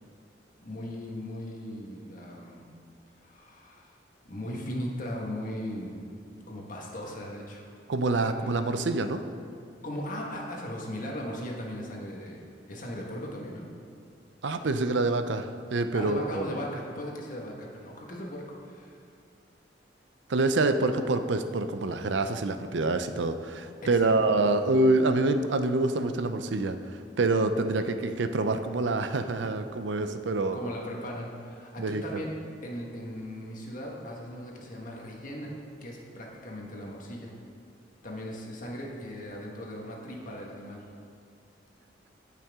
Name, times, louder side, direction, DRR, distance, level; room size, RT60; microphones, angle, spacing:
voice 1, 0.6-2.6 3.2-3.9 4.3-6.0 6.5-7.7 8.3-8.6 9.8-13.7 15.9-19.0 23.8-24.1 30.5-32.3 32.6-35.5 35.8-37.3 38.0-40.8, equal, 45° left, -1 dB, 1.5 m, -38 dB
voice 2, 7.9-9.2 14.4-16.5 20.3-30.6 31.8-32.2, right 2 dB, 80° right, 9 dB, 0.6 m, -26 dB
16.5 x 5.8 x 3.6 m, 2.4 s
head